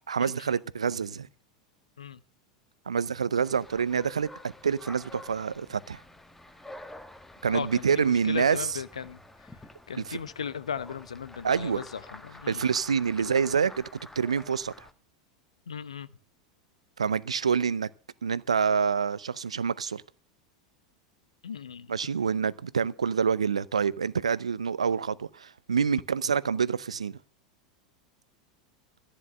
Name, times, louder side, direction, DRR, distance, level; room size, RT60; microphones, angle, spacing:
voice 1, 0.1-1.3 2.9-6.0 7.4-8.7 10.1-10.2 11.4-11.8 12.5-13.9 14.2-14.9 17.0-17.9 18.2-20.0 21.9-27.2, right 6 dB, 80° right, 0.6 m, -27 dB
sound 1, 3.4-14.9, left 1 dB, 10° left, 1.4 m, -49 dB
voice 2, 7.5-9.5 9.9-12.6 15.7-16.1 21.4-21.9, left 7 dB, 75° left, 0.8 m, -37 dB
14.5 x 9.9 x 6.3 m
figure-of-eight pair, 85°, 3 cm